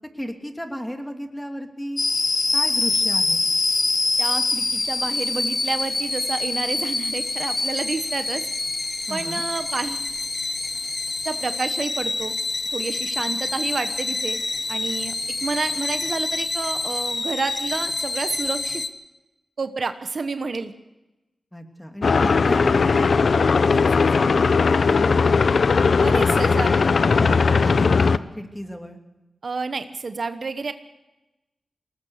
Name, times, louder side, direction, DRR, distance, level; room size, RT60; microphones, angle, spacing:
voice 1, 0.1-2.0 2.5-3.4 9.1-9.5 21.5-25.6 26.1-29.0, equal, 5° left, 4 dB, 2.9 m, -34 dB
sound 1, 2.0-18.9, left 3 dB, 45° left, 1.3 m, -26 dB
voice 2, 4.2-8.5 9.1-10.1 11.2-12.3 12.7-14.4 14.7-15.1 15.4-18.8 19.6-20.7 26.0-26.7 29.4-30.7, right 4 dB, 65° right, 9 dB, 1.1 m, -29 dB
sound 2, 22.0-28.2, left 4 dB, 65° left, 0.6 m, -18 dB
21.0 x 19.5 x 6.6 m, 1.0 s
cardioid pair, 55°, 0 cm